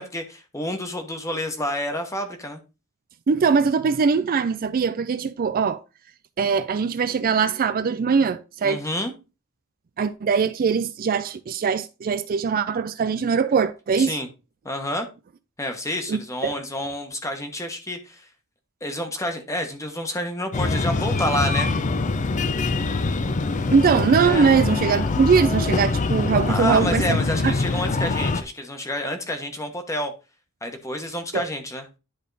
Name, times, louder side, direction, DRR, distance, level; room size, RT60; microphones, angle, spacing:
voice 1, 0.0-2.6 8.6-9.1 14.0-14.3 14.6-15.1 15.6-18.3 18.8-21.7 24.2-24.5 26.5-30.1 30.6-31.9, left 1 dB, 15° left, 1.1 m, -29 dB
voice 2, 3.3-5.8 6.4-8.8 10.0-14.2 16.1-16.6 23.7-27.5 31.3-31.5, right 5 dB, 40° right, 0.4 m, -21 dB
Breathing, 20.5-28.4, left 3 dB, 35° left, 0.5 m, -24 dB
10.5 x 3.6 x 3.9 m
head